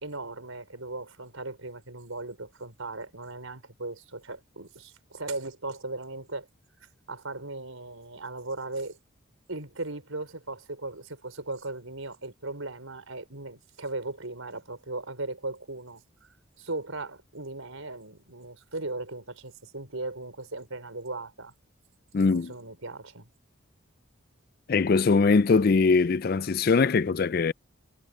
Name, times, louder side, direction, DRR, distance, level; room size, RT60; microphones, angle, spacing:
voice 1, 0.0-6.5 7.1-9.0 9.5-16.0 16.6-21.5 22.3-23.3, right 2 dB, 75° right, 4.8 m, -37 dB
voice 2, 22.1-22.5 24.7-27.5, left 4 dB, 45° left, 0.4 m, -22 dB
head